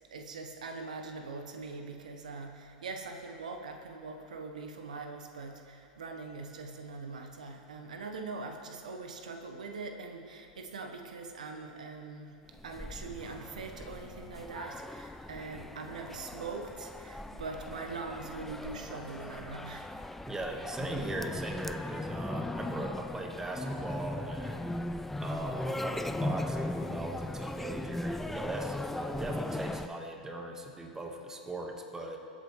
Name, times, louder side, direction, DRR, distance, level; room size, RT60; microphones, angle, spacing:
voice 1, 0.1-19.9 20.2-20.3, right 3 dB, 75° right, 4 dB, 1.0 m, -42 dB
sound 1, 12.5-29.9, left 1 dB, 5° left, 0.3 m, -38 dB
voice 2, 20.3-24.7 25.2-32.2, right 2 dB, 15° right, 3 dB, 1.4 m, -39 dB
22.0 x 8.3 x 3.2 m, 2.8 s
hypercardioid pair, 90°, 4 cm